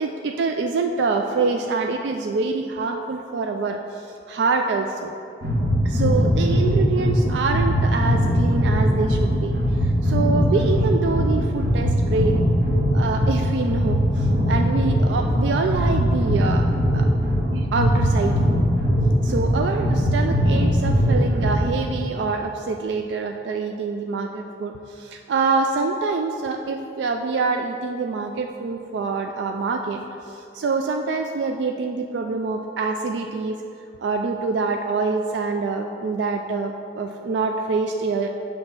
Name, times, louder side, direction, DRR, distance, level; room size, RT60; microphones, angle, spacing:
voice 1, 0.0-5.1 5.8-12.4 12.9-16.7 16.9-17.1 17.5-18.7 19.2-33.6 34.0-38.3, right 4 dB, 85° right, 4 dB, 0.3 m, -25 dB
sound 1, 5.4-21.8, equal, 65° right, 1.4 m, -20 dB
7.7 x 3.2 x 5.8 m, 2.7 s
head